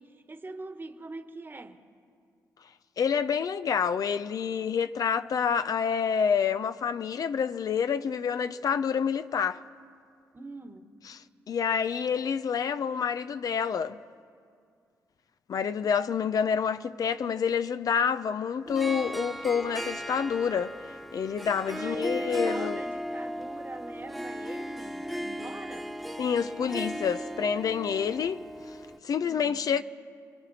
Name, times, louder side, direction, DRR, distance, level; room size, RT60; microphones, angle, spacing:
voice 1, 0.0-1.8 10.3-10.9 21.6-26.1 29.2-29.7, right 2 dB, 30° right, 1.4 m, -44 dB
voice 2, 3.0-9.6 11.1-11.2 11.5-14.0 15.5-20.7 21.1-22.8 26.2-28.4 28.7-28.8 29.0-29.8, left 7 dB, 60° left, 0.6 m, -28 dB
Harp, 18.7-29.0, equal, ahead, 1.3 m, -36 dB
29.5 x 22.0 x 4.2 m
supercardioid pair, 60°, 7 cm